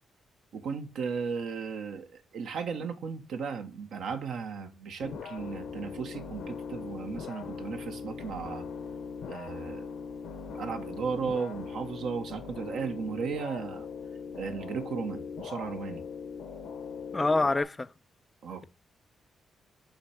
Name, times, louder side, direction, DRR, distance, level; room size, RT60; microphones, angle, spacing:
voice 1, 0.5-8.6 9.3-9.9 10.6-13.8 14.3-16.0 18.4-18.6, right 5 dB, 75° right, 1.0 m, -35 dB
sound 1, 5.0-17.6, left 5 dB, 80° left, 0.9 m, -40 dB
voice 2, 17.1-17.9, left 2 dB, 25° left, 0.4 m, -26 dB
6.4 x 3.4 x 5.5 m
supercardioid pair, 65°, 0 cm